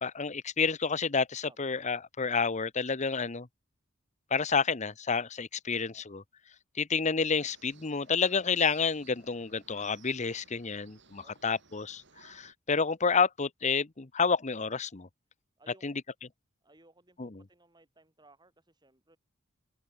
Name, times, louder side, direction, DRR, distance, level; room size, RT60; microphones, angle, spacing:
voice 1, 0.0-3.5 4.3-6.2 6.8-15.1 15.8-16.0 17.2-17.4, left 5 dB, 35° left, 0.9 m, -29 dB
sound 1, 7.4-12.5, right 6 dB, 60° right, 6.7 m, -58 dB
voice 2, 11.2-11.6 15.6-15.9 16.6-19.2, right 2 dB, 20° right, 6.0 m, -61 dB
open air
head